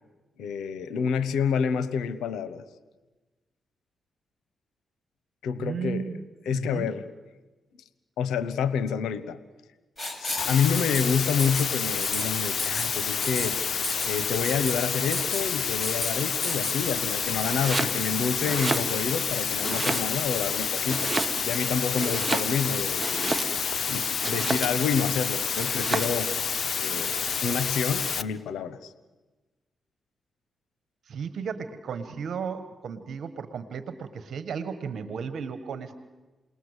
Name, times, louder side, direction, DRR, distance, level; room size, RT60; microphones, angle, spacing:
voice 1, 0.4-2.6 5.4-6.1 6.4-7.1 8.2-9.4 10.2-13.6 14.0-21.1 21.4-23.4 23.9-26.3 26.8-27.2 27.4-28.9, left 6 dB, 90° left, 14 dB, 1.0 m, -28 dB
voice 2, 5.6-6.2 6.5-6.9 31.1-36.0, right 6 dB, 70° right, 11 dB, 1.5 m, -34 dB
Writing, 10.0-10.5 10.7-11.0 11.4-11.7 12.0-12.2 12.6-12.9 13.2-13.5 13.8-14.1 14.4-14.7 15.1-15.4 15.8-16.1 16.4-16.8, left 1 dB, 25° left, 6.7 m, -32 dB
sound 1, 10.4-28.2, left 6 dB, 60° left, 1.0 m, -29 dB
Domestic sounds home sounds, 17.4-18.0 18.4-19.3 19.6-20.4 20.9-21.6 21.9-23.8 24.2-24.9 25.6-26.2, right 3 dB, 25° right, 1.8 m, -31 dB
29.0 x 20.5 x 8.2 m, 1.2 s
cardioid pair, 60°, 0 cm